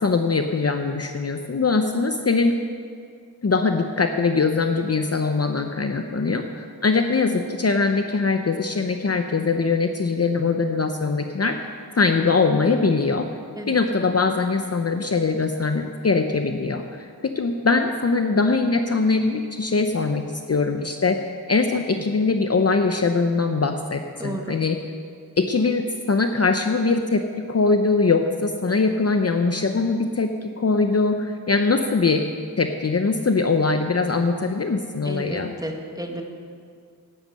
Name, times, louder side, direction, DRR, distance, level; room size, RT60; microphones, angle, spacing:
voice 1, 0.0-2.5 3.4-11.6 11.9-13.3 13.7-24.8 25.4-32.2 32.6-35.5, left 4 dB, 40° left, 6 dB, 0.7 m, -22 dB
voice 2, 24.2-24.6 35.0-36.2, right 1 dB, 10° right, 2 dB, 1.6 m, -32 dB
11.0 x 10.5 x 7.7 m, 2.2 s
wide cardioid pair, 75°, 39 cm